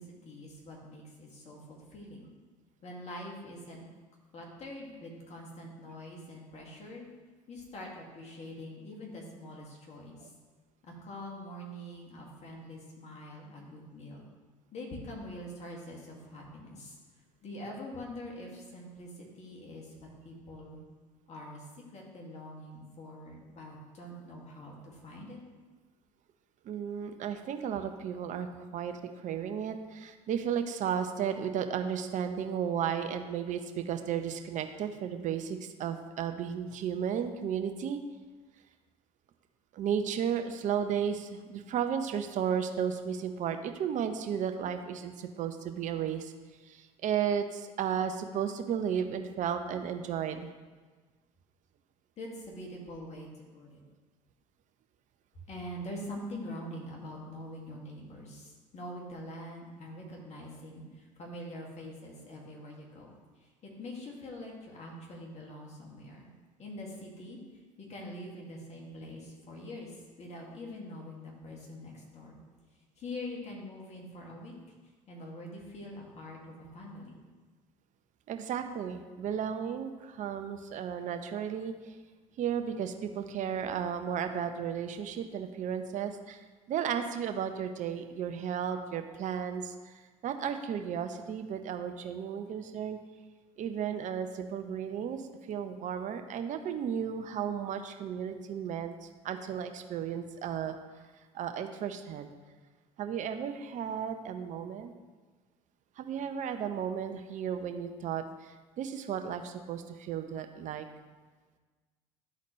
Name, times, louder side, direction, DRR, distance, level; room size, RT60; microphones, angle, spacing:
voice 1, 0.0-2.3 2.8-3.8 4.3-7.1 7.5-10.3 10.8-14.2 14.7-17.0 17.4-19.9 20.2-20.8 21.3-25.4 52.2-53.8 55.5-63.1 63.4-66.3 66.6-72.4 73.0-74.5 75.1-77.2, left 1 dB, 45° left, -2 dB, 2.1 m, -44 dB
voice 2, 18.3-18.7 26.6-38.0 39.7-46.3 46.6-50.5 78.3-82.0 82.4-93.0 93.6-101.0 101.3-102.3 103.0-104.9 106.0-110.9, right 8 dB, 50° right, 7 dB, 0.7 m, -34 dB
12.0 x 4.1 x 3.1 m, 1.3 s
hypercardioid pair, 70°, 16 cm